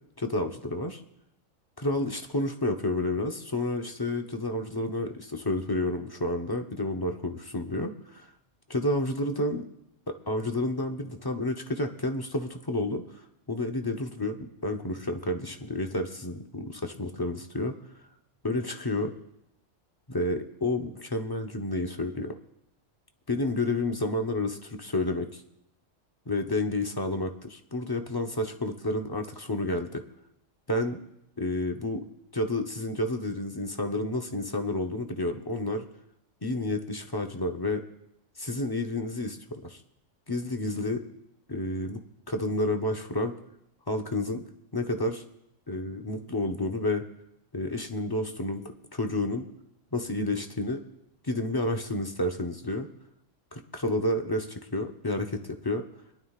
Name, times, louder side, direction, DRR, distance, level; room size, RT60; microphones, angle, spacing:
voice 1, 0.2-1.0 1.8-8.3 8.7-9.7 10.1-13.0 13.5-17.7 18.4-19.1 20.1-22.4 23.3-25.4 26.3-30.0 30.7-31.0 31.4-32.0 32.3-35.9 36.4-37.8 38.4-39.8 40.3-41.1 41.5-43.4 43.9-44.4 44.7-45.2 45.7-47.1 47.5-49.5 49.9-50.8 51.2-52.9 53.5-55.8, left 2 dB, 20° left, 4 dB, 0.7 m, -30 dB
22.0 x 11.0 x 2.4 m, 0.82 s
omnidirectional pair, 1.3 m